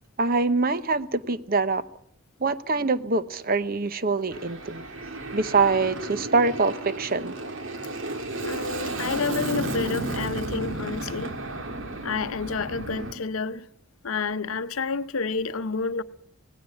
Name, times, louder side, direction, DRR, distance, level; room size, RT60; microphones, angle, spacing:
voice 1, 0.2-1.8 2.4-4.8 5.3-7.3, right 3 dB, 45° right, 0.8 m, -24 dB
Aircraft, 4.3-13.1, right 2 dB, 65° right, 2.0 m, -33 dB
voice 2, 8.4-11.4 12.0-13.7 14.0-16.0, left 4 dB, 80° left, 0.7 m, -29 dB
18.0 x 17.0 x 8.5 m
head